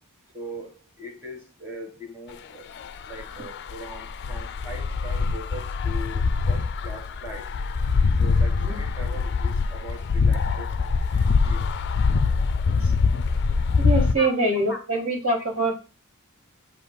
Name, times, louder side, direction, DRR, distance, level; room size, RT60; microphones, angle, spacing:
voice 1, 0.3-2.7 3.0-7.5 8.2-11.6 14.2-14.8, equal, 10° right, 1.2 m, -40 dB
sound 1, 2.8-14.1, left 4 dB, 50° left, 0.4 m, -24 dB
voice 2, 13.8-15.7, right 2 dB, 65° right, 1.8 m, -24 dB
7.7 x 2.6 x 5.2 m
head